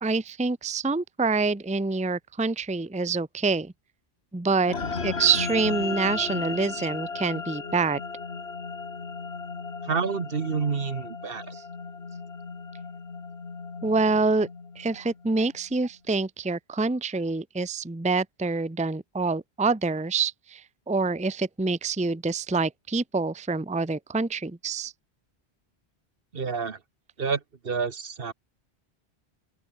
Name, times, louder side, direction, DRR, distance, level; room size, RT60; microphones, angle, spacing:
voice 1, 0.0-3.7 4.3-4.7 5.0-8.0 11.5-11.6 13.8-14.5 14.8-24.9, right 4 dB, 10° right, 0.7 m, -26 dB
sound 1, 4.7-15.3, left 4 dB, 75° left, 2.2 m, -35 dB
voice 2, 9.8-11.5 26.3-26.8 27.2-28.3, right 5 dB, 60° right, 1.5 m, -29 dB
open air
omnidirectional pair, 1.1 m